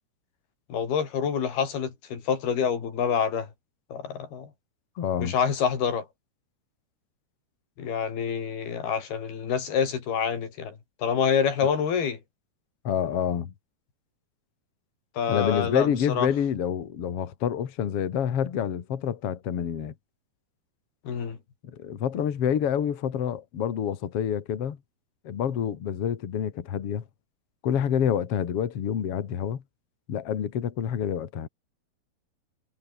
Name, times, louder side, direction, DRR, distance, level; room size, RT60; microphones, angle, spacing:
voice 1, 0.7-3.5 3.9-4.5 5.2-6.1 7.8-10.8 11.0-12.2 15.2-16.3 21.1-21.4, left 7 dB, 85° left, 5.8 m, -27 dB
voice 2, 5.0-5.3 12.8-13.5 15.3-19.9 21.6-24.8 25.2-27.0 27.6-29.6 30.1-31.5, left 8 dB, 45° left, 2.5 m, -27 dB
omnidirectional pair, 4.3 m